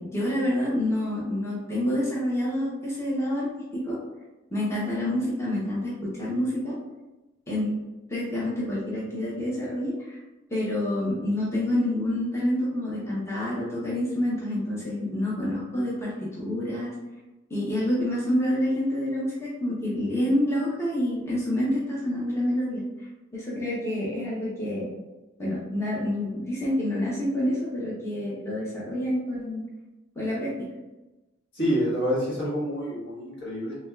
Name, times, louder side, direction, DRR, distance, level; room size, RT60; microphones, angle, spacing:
voice 1, 0.0-4.0 4.5-6.8 7.5-7.8 8.1-10.2 10.5-16.9 17.5-22.8 23.3-24.9 25.4-29.6 30.2-30.7, left 1 dB, 15° left, -7 dB, 0.7 m, -28 dB
voice 2, 31.5-33.8, equal, 60° left, -7 dB, 1.4 m, -27 dB
3.3 x 3.2 x 2.3 m, 1.1 s
head